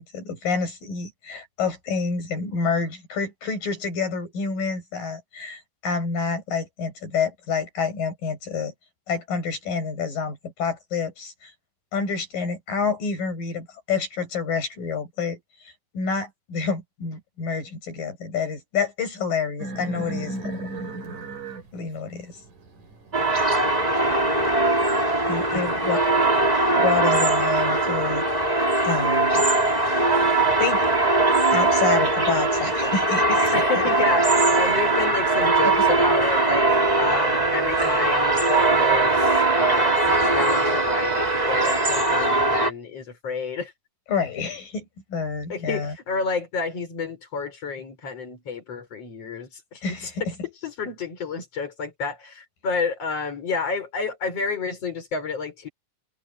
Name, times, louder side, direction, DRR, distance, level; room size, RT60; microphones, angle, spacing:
voice 1, 0.0-8.7 9.1-11.5 11.9-20.6 21.7-22.4 25.3-26.0 26.8-29.4 30.6-30.9 31.5-33.8 34.7-34.8 35.6-35.7 44.1-46.0 49.8-50.3, left 5 dB, 90° left, 9.1 m, -28 dB
sound 1, 19.6-24.6, right 2 dB, 70° right, 5.7 m, -36 dB
sound 2, 23.1-42.7, right 2 dB, 10° right, 3.5 m, -21 dB
voice 2, 25.5-26.3 33.5-43.7 45.5-50.3 50.6-55.7, left 4 dB, 45° left, 6.4 m, -30 dB
sound 3, 36.6-41.8, right 13 dB, 40° right, 4.2 m, -31 dB
omnidirectional pair, 3.8 m